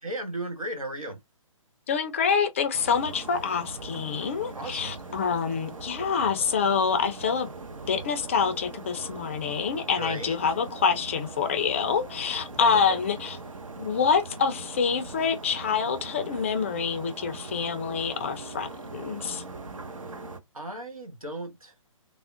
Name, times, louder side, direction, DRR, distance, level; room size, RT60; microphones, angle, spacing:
voice 1, 0.0-1.2 4.5-5.0 9.9-10.4 12.5-13.0 20.5-21.7, right 1 dB, 90° right, 1.1 m, -36 dB
voice 2, 1.9-7.5 7.9-13.4 13.8-19.4, left 6 dB, 25° left, 0.4 m, -26 dB
sound 1, 2.7-20.4, right 3 dB, 70° right, 0.7 m, -41 dB
3.5 x 2.0 x 2.4 m
figure-of-eight pair, 140°, 17 cm